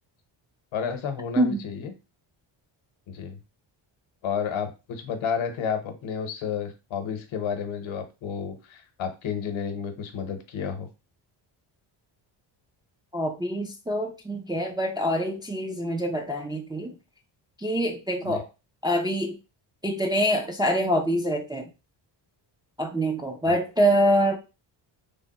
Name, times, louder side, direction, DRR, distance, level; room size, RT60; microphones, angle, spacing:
voice 1, 0.7-1.9 3.1-3.4 4.2-10.9 18.2-18.4 23.5-23.6, left 7 dB, 75° left, 8 dB, 0.9 m, -31 dB
voice 2, 13.1-16.9 17.6-18.4 18.8-19.4 19.8-21.7 22.8-24.4, equal, 10° right, 2 dB, 0.3 m, -25 dB
3.3 x 2.1 x 4.0 m, 0.28 s
cardioid pair, 115°, 49 cm